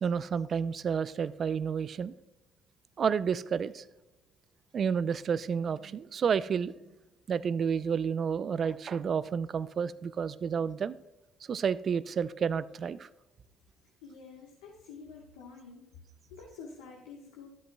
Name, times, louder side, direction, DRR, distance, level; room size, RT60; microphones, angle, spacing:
voice 1, 0.0-2.1 3.0-3.8 4.7-6.7 7.3-11.0 11.5-13.1, right 6 dB, 50° right, 17 dB, 0.4 m, -30 dB
voice 2, 14.0-15.9 16.3-17.5, left 5 dB, 90° left, -1 dB, 1.2 m, -48 dB
12.5 x 8.0 x 2.2 m, 0.96 s
supercardioid pair, 60°, 0 cm